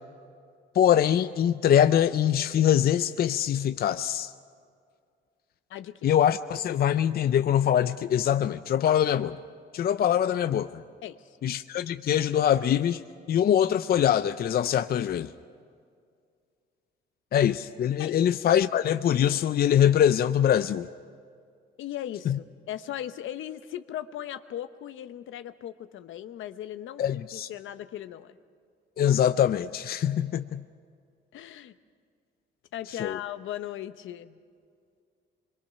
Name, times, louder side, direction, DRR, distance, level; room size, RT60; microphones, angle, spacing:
voice 1, 0.7-4.3 6.0-9.4 9.7-10.8 11.4-13.0 13.3-15.3 17.3-20.9 22.3-22.4 27.0-27.5 29.0-30.6 33.0-33.2, left 10 dB, 50° left, 11 dB, 0.5 m, -23 dB
voice 2, 5.7-6.1 11.0-11.4 18.0-18.2 21.8-28.4 31.3-31.7 32.7-34.4, left 11 dB, 80° left, 11 dB, 0.9 m, -38 dB
25.0 x 23.0 x 5.7 m, 2.2 s
cardioid pair, 90°, 20 cm